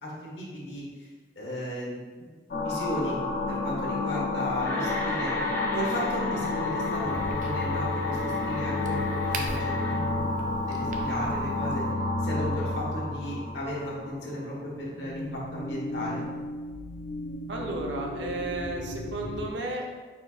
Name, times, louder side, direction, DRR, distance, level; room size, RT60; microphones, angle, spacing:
voice 1, 0.0-1.1 1.3-2.3 2.6-3.2 3.5-10.3 10.7-11.8 12.2-16.3, equal, 80° left, -5 dB, 1.3 m, -35 dB
sound 1, 2.5-14.5 14.9-19.5, left 2 dB, 45° left, 0.4 m, -31 dB
sound 2, 4.6-10.0, left 1 dB, 15° left, 0.7 m, -37 dB
Crack, 6.8-11.9, right 3 dB, 45° right, 0.4 m, -43 dB
voice 2, 17.5-20.1, right 2 dB, 85° right, 0 dB, 0.7 m, -33 dB
4.5 x 4.4 x 2.4 m, 1.4 s
head